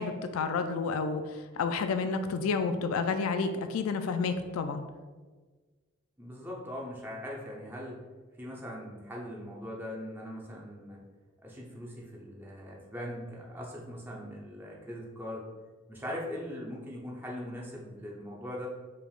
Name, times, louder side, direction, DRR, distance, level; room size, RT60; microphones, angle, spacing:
voice 1, 0.0-4.8, left 4 dB, 85° left, 8 dB, 0.3 m, -30 dB
voice 2, 6.2-8.0 8.4-11.0 11.4-15.5 15.9-18.7, equal, 10° right, -3 dB, 0.7 m, -40 dB
4.9 x 3.4 x 2.4 m, 1.4 s
head